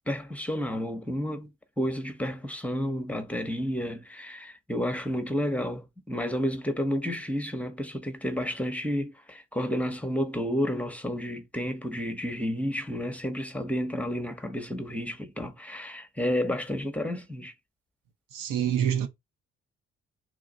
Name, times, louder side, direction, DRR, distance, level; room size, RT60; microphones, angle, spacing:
voice 1, 0.1-1.5 1.8-17.5, equal, 5° left, 0.9 m, -31 dB
voice 2, 18.3-19.1, right 9 dB, 80° right, 0.8 m, -26 dB
3.5 x 2.5 x 3.8 m
supercardioid pair, 55°, 31 cm